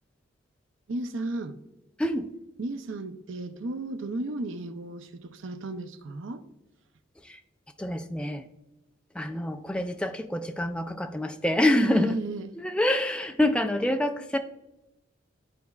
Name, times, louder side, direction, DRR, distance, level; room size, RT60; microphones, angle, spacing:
voice 1, 0.9-1.6 2.6-6.4 11.7-12.5, right 2 dB, 75° right, 0.6 m, -33 dB
voice 2, 2.0-2.3 7.2-7.4 7.8-8.4 9.1-12.2 12.6-14.4, left 1 dB, 5° left, 0.3 m, -26 dB
12.5 x 4.2 x 2.3 m
head